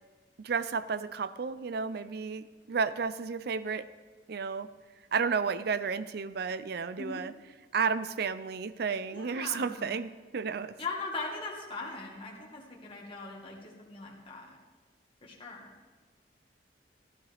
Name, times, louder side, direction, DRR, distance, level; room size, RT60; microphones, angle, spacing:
voice 1, 0.4-3.9 4.3-4.7 5.1-7.3 7.7-10.8, right 5 dB, 65° right, 15 dB, 0.5 m, -32 dB
voice 2, 9.1-10.0 10.8-14.5 15.2-15.7, left 3 dB, 30° left, -3 dB, 1.5 m, -40 dB
15.0 x 12.0 x 3.4 m, 1.4 s
head